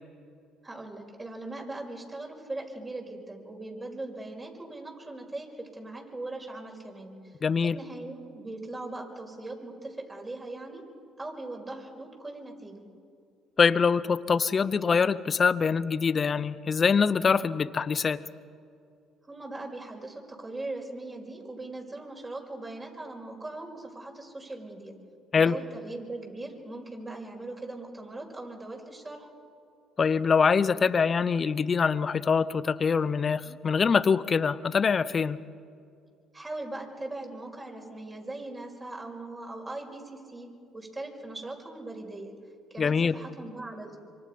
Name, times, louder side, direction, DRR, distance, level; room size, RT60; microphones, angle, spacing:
voice 1, 0.6-7.2 7.6-10.8 11.2-12.8 19.3-24.9 25.3-29.3 36.3-42.3 42.7-44.0, right 2 dB, 25° right, 0 dB, 5.5 m, -40 dB
voice 2, 7.4-7.8 13.6-18.2 25.3-25.6 30.0-35.4 42.8-43.1, left 5 dB, 40° left, 16 dB, 0.8 m, -24 dB
26.5 x 24.5 x 5.4 m, 2.4 s
supercardioid pair, 75°, 0 cm